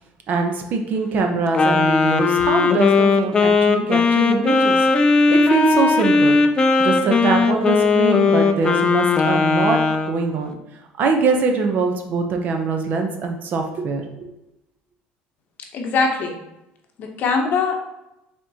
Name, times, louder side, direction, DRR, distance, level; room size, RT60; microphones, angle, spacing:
voice 1, 0.3-4.8 5.3-6.4 6.8-9.8 10.1-10.5 11.0-14.3, right 4 dB, 45° right, 4 dB, 0.6 m, -22 dB
Wind instrument woodwind instrument, 1.5-10.2, left 4 dB, 20° left, 0.4 m, -17 dB
voice 2, 15.7-16.4 17.0-17.8, left 4 dB, 50° left, 3 dB, 0.8 m, -21 dB
5.3 x 3.6 x 2.7 m, 0.91 s
cardioid pair, 135°, 4 cm